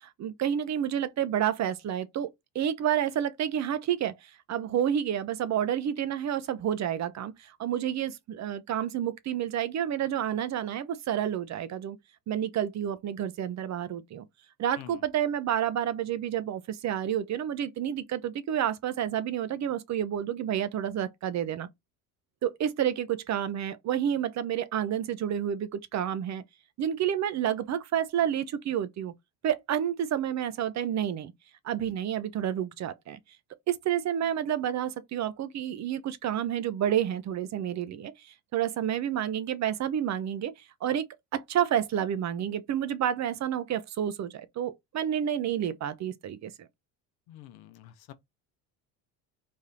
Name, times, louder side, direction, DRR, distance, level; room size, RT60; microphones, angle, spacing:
voice 1, 0.0-12.0 12.3-14.2 14.6-21.7 22.4-26.4 26.8-29.1 29.4-31.3 31.6-33.2 33.7-40.5 40.8-41.1 41.3-46.5, right 10 dB, 45° right, 0.6 m, -29 dB
voice 2, 47.3-48.1, left 12 dB, 70° left, 0.8 m, -47 dB
3.4 x 2.6 x 3.6 m
supercardioid pair, 85°, 39 cm